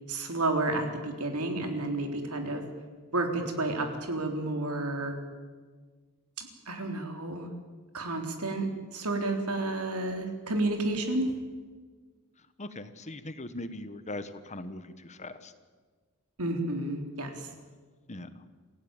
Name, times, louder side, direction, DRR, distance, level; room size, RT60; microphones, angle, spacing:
voice 1, 0.1-2.6 3.1-5.2 6.4-7.5 7.9-8.7 8.9-11.3 16.4-17.5, right 2 dB, 85° right, 5 dB, 3.8 m, -31 dB
voice 2, 12.6-15.5 18.1-18.4, left 1 dB, 30° left, 11 dB, 1.3 m, -40 dB
28.0 x 16.0 x 9.0 m, 1.5 s
head